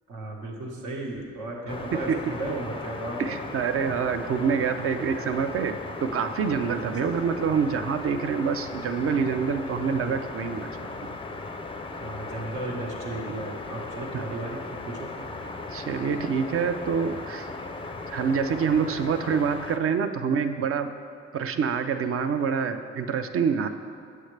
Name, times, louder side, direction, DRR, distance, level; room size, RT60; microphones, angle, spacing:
voice 1, 0.1-3.4 7.0-7.1 12.0-15.1, right 2 dB, 80° right, -2 dB, 1.3 m, -35 dB
sound 1, 1.7-19.8, left 3 dB, 20° left, 0.4 m, -37 dB
voice 2, 3.2-10.7 14.1-14.2 15.7-17.5 18.1-20.9 21.3-23.7, right 6 dB, 50° right, 9 dB, 0.5 m, -26 dB
7.8 x 6.5 x 3.2 m, 2.3 s
cardioid pair, 90°, 30 cm